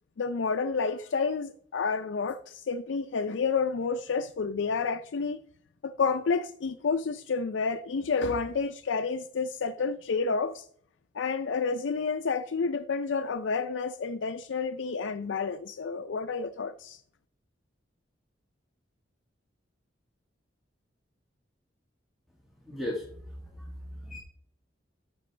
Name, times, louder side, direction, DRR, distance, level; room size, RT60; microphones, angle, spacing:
voice 1, 0.2-5.4 5.8-10.7 11.1-17.0, left 5 dB, 75° left, 0.5 m, -30 dB
voice 2, 22.6-24.2, left 1 dB, ahead, 1.5 m, -37 dB
13.0 x 6.1 x 3.3 m
head